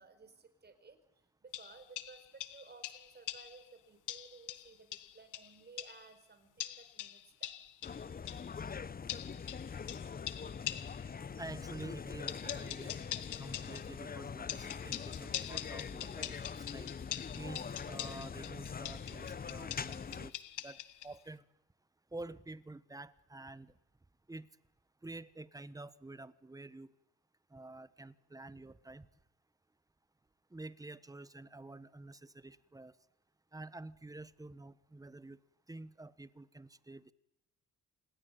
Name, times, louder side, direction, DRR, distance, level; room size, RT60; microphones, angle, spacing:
voice 1, 0.0-7.5, right 4 dB, 35° right, 11 dB, 4.7 m, -57 dB
sound 1, 1.5-3.6 4.1-6.1 6.6-8.5 9.1-11.1 12.3-13.9 14.5-21.1, left 13 dB, 85° left, 1.5 m, -44 dB
sound 2, 7.8-20.3, left 6 dB, 30° left, 0.9 m, -43 dB
voice 2, 11.4-12.9 13.4-16.9 17.3-20.4 20.6-21.4 22.1-23.7 24.3-24.5 25.0-26.9 27.5-29.1 30.5-32.9 33.5-35.4 35.7-37.1, right 2 dB, 10° right, 16 dB, 1.2 m, -49 dB
27.5 x 20.0 x 9.3 m, 0.86 s
cardioid pair, 90°, 30 cm